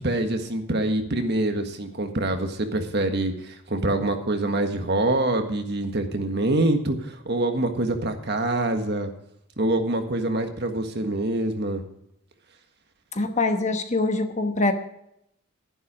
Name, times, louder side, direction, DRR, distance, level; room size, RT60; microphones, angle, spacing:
voice 1, 0.0-9.1 9.6-11.8, right 2 dB, 50° right, 6 dB, 1.6 m, -25 dB
voice 2, 13.1-14.7, left 2 dB, 35° left, 7 dB, 1.1 m, -24 dB
12.0 x 11.0 x 5.0 m, 0.78 s
head